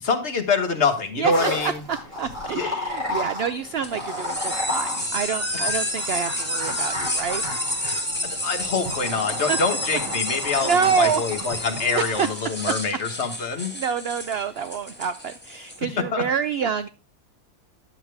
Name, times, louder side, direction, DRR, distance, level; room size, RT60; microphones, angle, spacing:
voice 1, 0.0-1.8 2.5-2.7 8.2-13.7 16.1-16.2, left 4 dB, 50° left, 6 dB, 1.4 m, -25 dB
sound 1, 1.3-12.2, left 1 dB, 20° right, 4.9 m, -33 dB
voice 2, 1.6-7.4 9.5-9.6 10.4-11.2 11.5-12.8 13.7-16.9, right 7 dB, 70° right, 11 dB, 0.5 m, -27 dB
sound 2, 3.8-15.8, left 1 dB, 5° left, 1.5 m, -30 dB
Motor vehicle (road) / Siren, 5.2-10.4, left 3 dB, 30° left, 1.3 m, -40 dB
10.0 x 7.2 x 3.3 m, 0.32 s
omnidirectional pair, 1.6 m